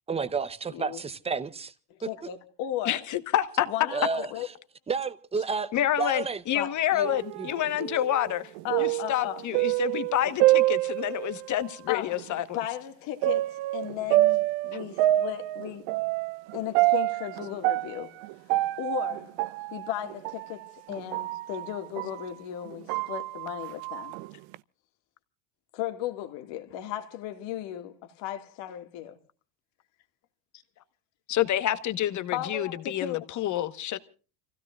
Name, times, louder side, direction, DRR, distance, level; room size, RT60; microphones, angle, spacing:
voice 1, 0.1-1.7 3.9-4.3 4.9-6.4 6.9-7.1 7.4-7.5, right 5 dB, 15° right, 0.7 m, -31 dB
voice 2, 0.7-1.0 1.9-3.0 3.7-4.5 6.5-6.7 8.6-9.4 11.9-12.2 12.5-13.4 13.7-15.8 16.5-18.1 18.8-19.4 19.7-24.1 25.7-29.2 32.3-33.3, left 12 dB, 60° left, 2.1 m, -35 dB
voice 3, 2.8-3.7 5.7-8.5 8.8-12.4 31.3-34.0, left 12 dB, 35° left, 1.2 m, -28 dB
sound 1, 7.0-11.7 12.1-12.2 13.2-22.3 22.7-24.5, right 17 dB, 65° right, 0.7 m, -27 dB
29.5 x 16.5 x 2.4 m
cardioid pair, 145°, 49 cm